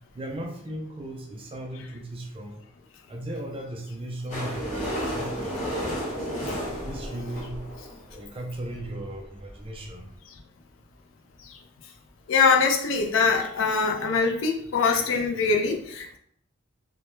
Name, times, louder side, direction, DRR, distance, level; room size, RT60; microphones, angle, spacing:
voice 1, 0.1-2.6 3.1-6.3 6.8-7.6 8.1-10.1, right 1 dB, 25° right, 2 dB, 0.3 m, -37 dB
sound 1, 4.3-8.2 8.8-8.9 9.1-9.2 9.4-9.5 9.8-9.9, equal, 35° left, 0.8 m, -32 dB
voice 2, 12.3-16.2, left 5 dB, 65° left, 2 dB, 0.4 m, -23 dB
2.1 x 2.0 x 2.9 m, 0.68 s
head